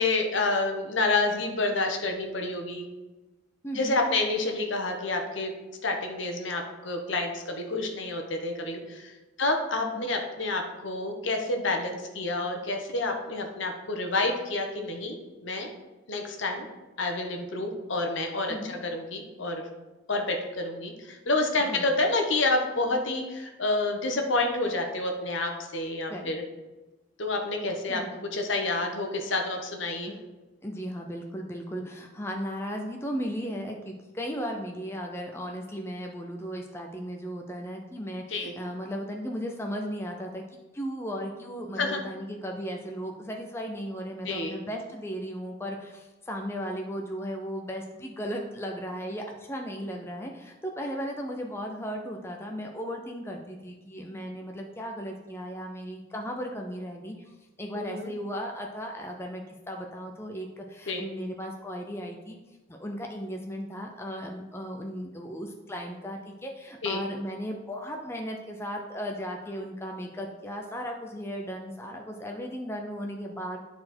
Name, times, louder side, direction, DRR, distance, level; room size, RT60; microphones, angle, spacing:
voice 1, 0.0-2.9 3.7-5.5 5.8-9.1 9.4-15.7 16.1-16.7 17.0-19.6 20.1-26.4 27.2-28.0 28.3-30.2 38.3-38.5 41.8-42.0 44.2-44.5 57.7-58.1 60.9-61.0 66.8-67.0, left 2 dB, 65° left, 3 dB, 1.1 m, -29 dB
voice 2, 3.6-4.0 9.7-10.1 18.5-18.8 21.7-21.9 26.1-26.3 27.9-28.1 30.1-30.2 30.6-62.4 62.7-73.6, equal, 10° left, 2 dB, 0.5 m, -36 dB
9.7 x 4.3 x 4.4 m, 1.1 s
head